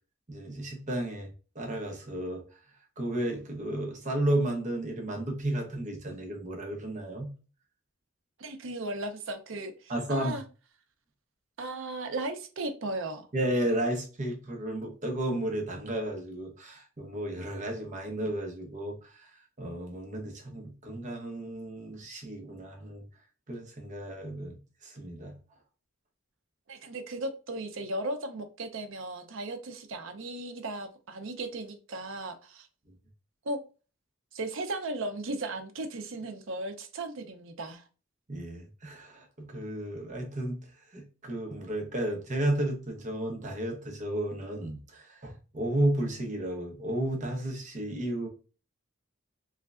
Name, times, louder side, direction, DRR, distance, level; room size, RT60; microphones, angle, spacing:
voice 1, 0.3-1.3 1.5-2.4 3.0-7.3 9.9-10.4 13.3-19.3 19.6-23.0 23.5-24.6 24.8-25.3 38.3-40.6 40.9-48.3, right 1 dB, 40° right, 0.9 m, -33 dB
voice 2, 8.4-10.4 11.6-13.3 26.7-32.7 33.4-33.6 34.3-37.8, right 2 dB, 65° right, 0.6 m, -36 dB
3.6 x 3.2 x 2.4 m
head